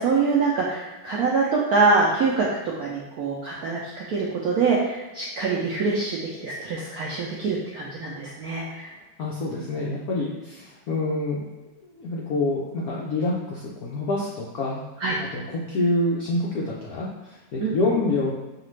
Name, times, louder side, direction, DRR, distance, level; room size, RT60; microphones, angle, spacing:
voice 1, 0.0-2.5 2.8-8.9 15.0-15.2 17.6-17.8, right 4 dB, 80° right, -4 dB, 0.8 m, -24 dB
voice 2, 9.2-11.4 12.0-14.8 15.3-18.3, left 2 dB, 75° left, -4 dB, 0.8 m, -26 dB
5.7 x 2.4 x 3.1 m, 1.1 s
omnidirectional pair, 2.2 m